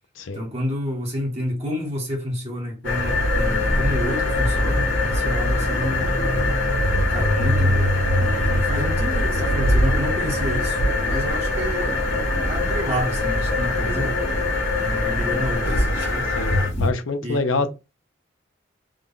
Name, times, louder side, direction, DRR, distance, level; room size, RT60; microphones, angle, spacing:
voice 1, 0.3-6.1 7.1-7.9 8.2-14.3 14.8-16.3 17.2-17.4, equal, 30° right, 1.0 m, -29 dB
sound 1, 2.8-16.9, left 1 dB, 70° left, 1.3 m, -22 dB
voice 2, 16.3-17.7, left 3 dB, 90° left, 0.6 m, -26 dB
3.7 x 2.2 x 3.7 m
head